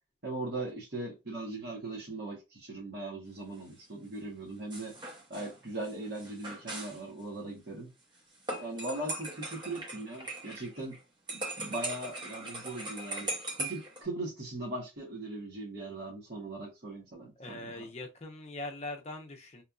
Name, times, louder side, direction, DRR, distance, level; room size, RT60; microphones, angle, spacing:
voice 1, 0.2-4.9 5.3-7.9 8.6-11.0 11.3-13.3 13.6-17.7, right 2 dB, 50° right, 1.2 m, -39 dB
sound 1, 4.7-7.0 8.5-11.0 11.3-14.0, right 2 dB, 25° right, 0.8 m, -40 dB
voice 2, 17.4-19.6, left 2 dB, 30° left, 0.6 m, -41 dB
3.0 x 2.5 x 2.4 m
head